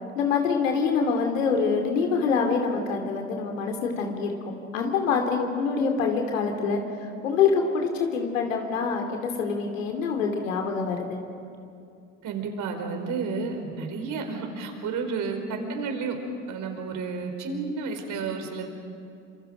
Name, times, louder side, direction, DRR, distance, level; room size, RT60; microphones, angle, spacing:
voice 1, 0.2-6.8 7.2-11.2 15.5-15.8, left 5 dB, 75° left, 3 dB, 2.9 m, -25 dB
voice 2, 12.2-16.2 16.5-18.7, right 4 dB, 50° right, 4 dB, 4.8 m, -31 dB
29.5 x 26.5 x 5.2 m, 2.5 s
hypercardioid pair, 70°, 39 cm